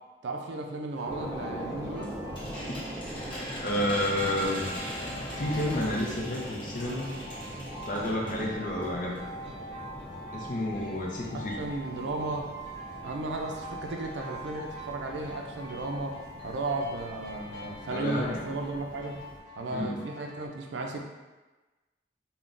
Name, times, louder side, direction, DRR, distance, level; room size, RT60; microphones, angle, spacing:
voice 1, 0.2-2.1 11.3-12.5 13.0-19.2 19.6-21.0, right 2 dB, 80° right, 2 dB, 0.4 m, -35 dB
sound 1, 0.9-20.5, equal, 90° left, 0.7 m, -44 dB
sound 2, 1.1-19.4, right 1 dB, 10° right, 0.4 m, -43 dB
sound 3, 1.6-8.5 8.8-8.9 9.1-9.2, equal, 25° left, 0.8 m, -41 dB
voice 2, 3.6-4.6 5.4-7.2 7.9-9.2 10.3-11.6 17.9-18.4 19.7-20.0, left 1 dB, 45° left, -1 dB, 0.5 m, -30 dB
3.7 x 2.2 x 2.4 m, 1.2 s
head